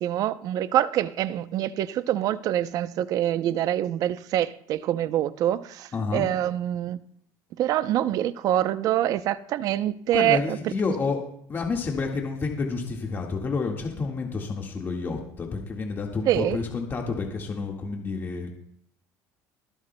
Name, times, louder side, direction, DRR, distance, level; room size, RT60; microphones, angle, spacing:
voice 1, 0.0-7.0 7.6-10.6 16.3-16.6, right 12 dB, 60° right, 0.6 m, -25 dB
voice 2, 5.9-6.3 10.1-11.2 11.5-18.5, left 4 dB, 30° left, 1.7 m, -29 dB
26.0 x 10.0 x 2.2 m
cardioid pair, 115°, 7 cm